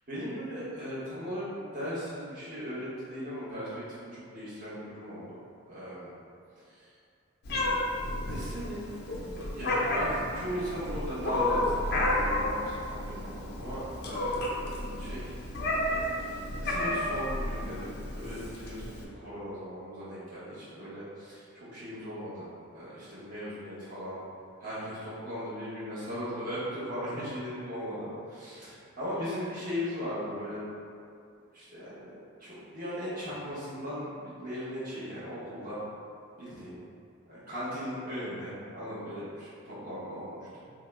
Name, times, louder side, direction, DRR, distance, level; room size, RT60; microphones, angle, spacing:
voice 1, 0.1-5.4 5.6-6.1 6.7-6.9 7.9-15.3 16.6-22.5 22.7-24.2 24.6-28.7 29.0-30.7 31.5-32.1 32.4-35.8 36.4-36.8 37.3-40.4, equal, 40° right, -11 dB, 0.9 m, -38 dB
Meow, 7.5-19.0, left 1 dB, 50° left, 0.4 m, -31 dB
3.5 x 2.0 x 3.3 m, 2.4 s
head